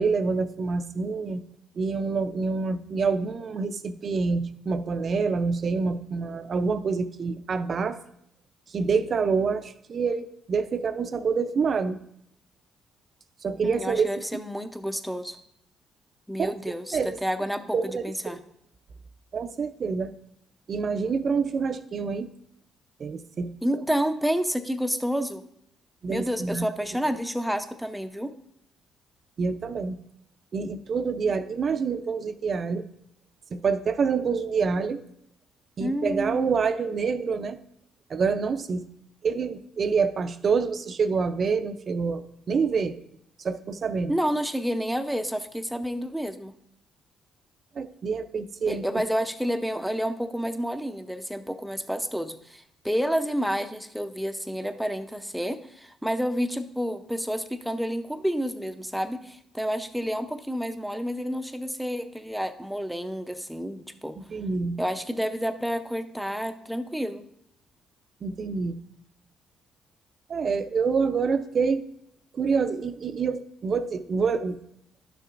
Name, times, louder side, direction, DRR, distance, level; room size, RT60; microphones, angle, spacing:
voice 1, 0.0-1.4 1.8-8.0 8.7-12.0 13.4-14.1 16.4-16.5 16.9-17.2 17.7-18.4 19.3-20.1 20.7-22.3 23.0-23.5 26.0-26.7 29.4-30.0 30.5-32.9 33.5-35.0 35.8-37.6 38.1-38.9 39.2-43.0 43.4-44.1 47.8-48.9 64.2-64.8 68.2-68.8 70.3-71.8 72.3-74.6, right 5 dB, 50° right, 11 dB, 0.5 m, -27 dB
voice 2, 13.6-15.4 16.3-18.4 23.6-25.4 26.1-28.3 35.8-36.5 44.1-46.5 48.7-64.1 64.8-67.2, equal, ahead, 8 dB, 0.6 m, -29 dB
11.5 x 6.7 x 2.5 m, 0.73 s
cardioid pair, 80°, 0 cm